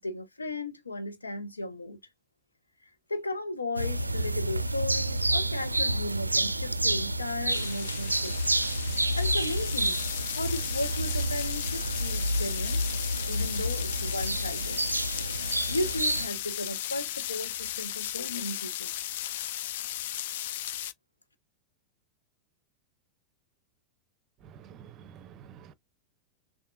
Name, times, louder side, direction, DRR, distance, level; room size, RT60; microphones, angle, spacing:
voice 1, 0.0-2.0 2.8-8.4 9.1-10.0 10.3-12.8 13.3-14.8 15.4-18.9, left 2 dB, 80° left, 0.9 m, -35 dB
sound 1, 3.8-16.3, right 1 dB, 85° right, 0.4 m, -29 dB
sound 2, 7.5-20.9, left 12 dB, 55° left, 0.4 m, -36 dB
voice 2, 24.4-25.7, right 8 dB, 35° right, 0.6 m, -49 dB
6.5 x 2.5 x 2.4 m
figure-of-eight pair, 90°, 0 cm